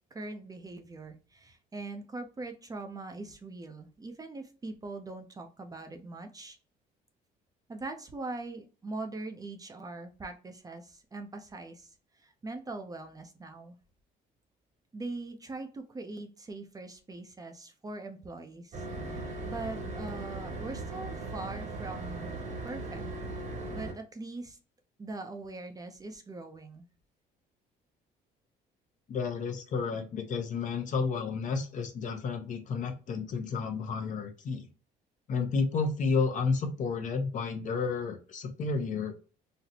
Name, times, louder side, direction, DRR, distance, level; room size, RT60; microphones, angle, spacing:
voice 1, 0.1-6.6 7.7-11.9 12.2-13.8 14.9-22.3 22.6-23.0 23.7-24.6 25.0-26.8, right 2 dB, 20° right, 6 dB, 0.6 m, -42 dB
sound 1, 18.7-23.9, right 2 dB, 45° right, 1.1 m, -38 dB
voice 2, 29.1-34.7 35.3-39.1, left 4 dB, 50° left, 5 dB, 0.8 m, -31 dB
4.1 x 2.1 x 2.7 m, 0.35 s
cardioid pair, 110°, 17 cm